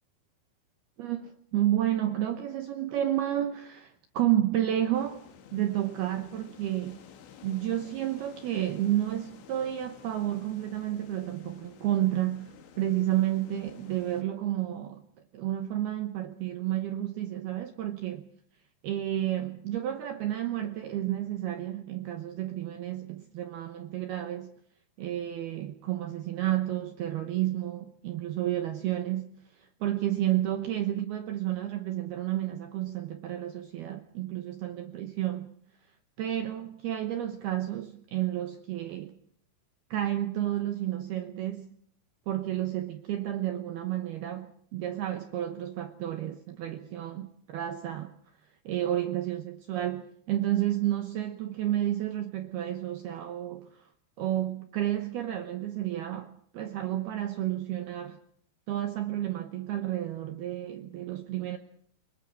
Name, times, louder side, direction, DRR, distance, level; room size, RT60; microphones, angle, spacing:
voice 1, 1.0-5.3 5.5-7.0 7.4-15.0 15.3-18.3 18.8-24.6 25.0-35.5 36.2-39.2 39.9-41.7 42.3-48.1 48.7-53.9 54.2-58.2 58.7-61.6, right 12 dB, 80° right, 2.3 m, -31 dB
sound 1, 4.9-14.2, left 8 dB, 65° left, 4.0 m, -52 dB
23.5 x 22.0 x 6.2 m
omnidirectional pair, 6.0 m